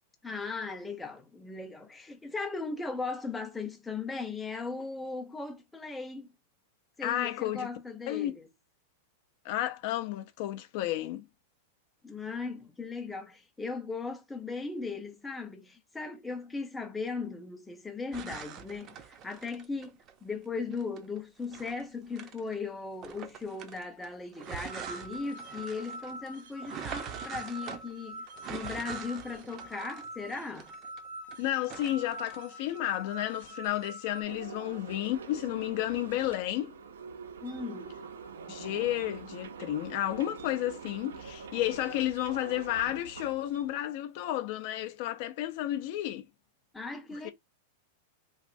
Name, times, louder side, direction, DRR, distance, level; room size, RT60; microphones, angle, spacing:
voice 1, 0.2-6.3 7.0-8.5 12.0-30.7 37.4-37.9 46.7-47.3, left 4 dB, 10° left, 0.6 m, -38 dB
voice 2, 7.0-7.7 8.1-8.3 9.4-11.3 31.4-36.7 38.5-46.2 47.1-47.3, left 14 dB, 55° left, 0.4 m, -32 dB
sound 1, 18.1-20.1 20.7-22.6 23.0-31.4 31.6-32.4, right 8 dB, 35° right, 0.5 m, -44 dB
sound 2, 24.4-34.2, right 1 dB, 65° right, 0.9 m, -45 dB
sound 3, 34.2-43.7, right 5 dB, 90° right, 0.4 m, -45 dB
3.0 x 2.5 x 2.5 m
hypercardioid pair, 135°, 0 cm